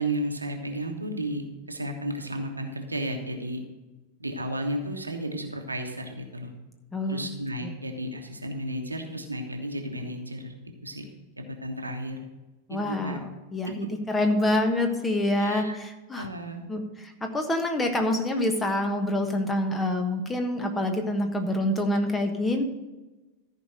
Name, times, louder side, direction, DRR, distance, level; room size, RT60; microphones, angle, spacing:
voice 1, 0.0-3.6 4.2-6.5 7.1-10.5 10.8-11.1 11.4-12.2 12.7-13.2 13.7-13.8 15.4-15.8 16.1-16.6, right 1 dB, 80° right, 3 dB, 1.3 m, -33 dB
voice 2, 6.9-7.3 7.6-7.7 12.7-16.3 16.7-22.6, left 1 dB, 15° left, 5 dB, 1.3 m, -26 dB
13.5 x 5.1 x 6.5 m, 1.1 s
figure-of-eight pair, 90°, 0 cm